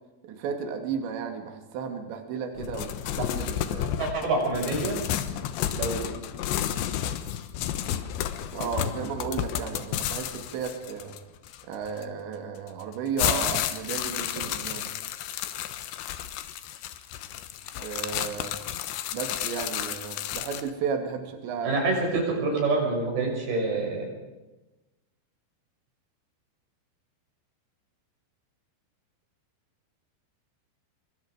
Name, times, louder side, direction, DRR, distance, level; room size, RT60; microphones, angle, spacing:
voice 1, 0.2-3.9 8.5-11.2 11.7-14.9 17.8-18.5 19.1-21.8, right 6 dB, 75° right, 5 dB, 4.5 m, -34 dB
sound 1, 2.6-12.0 12.7-20.7, left 11 dB, 75° left, 3.2 m, -31 dB
voice 2, 4.0-5.0 5.7-6.1 14.4-14.5 21.6-24.1, right 3 dB, 55° right, 1 dB, 8.3 m, -27 dB
25.5 x 24.0 x 5.1 m, 1.1 s
omnidirectional pair, 5.3 m